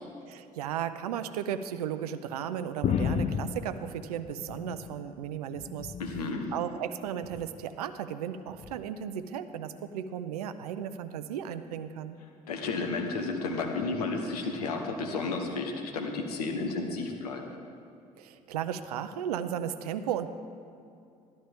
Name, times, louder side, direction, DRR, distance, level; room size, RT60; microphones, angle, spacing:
voice 1, 0.3-5.9 6.5-12.2 18.2-20.3, right 9 dB, 75° right, 12 dB, 0.5 m, -35 dB
sound 1, 2.8-5.1 5.4-6.4 7.2-7.6 8.6-8.8, left 7 dB, 35° left, 0.5 m, -33 dB
voice 2, 6.0-6.5 12.2-17.6, left 3 dB, 75° left, 3 dB, 1.2 m, -32 dB
13.5 x 12.0 x 3.6 m, 2.5 s
figure-of-eight pair, 50°, 20 cm